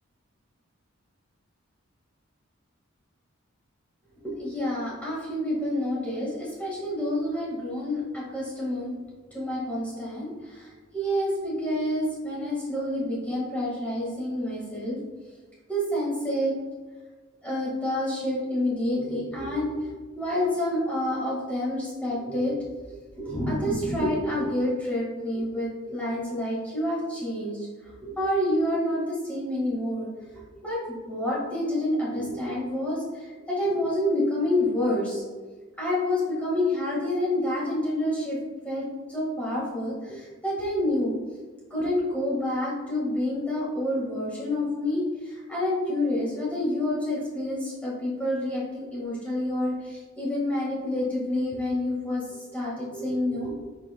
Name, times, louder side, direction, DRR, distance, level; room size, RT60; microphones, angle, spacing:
voice 1, 4.1-8.9 9.3-15.0 15.7-16.5 17.4-19.8 20.2-30.1 30.6-35.2 35.8-38.4 38.6-41.1 41.7-52.2 52.5-53.5, left 1 dB, 5° left, -6 dB, 1.7 m, -28 dB
9.8 x 5.5 x 2.3 m, 1.3 s
head